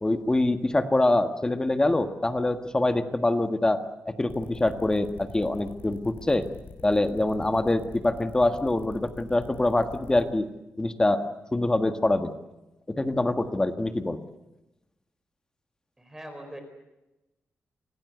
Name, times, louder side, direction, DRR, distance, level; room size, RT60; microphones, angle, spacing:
voice 1, 0.0-6.5 6.8-10.5 10.8-11.2 11.5-12.3 12.9-14.2, left 2 dB, 15° left, 8 dB, 1.6 m, -25 dB
sound 1, 4.3-10.2, left 4 dB, 60° left, 5.8 m, -45 dB
voice 2, 16.0-16.6, right 1 dB, 10° right, 6 dB, 4.4 m, -41 dB
25.5 x 18.0 x 8.0 m, 0.98 s
wide cardioid pair, 130°, 4 cm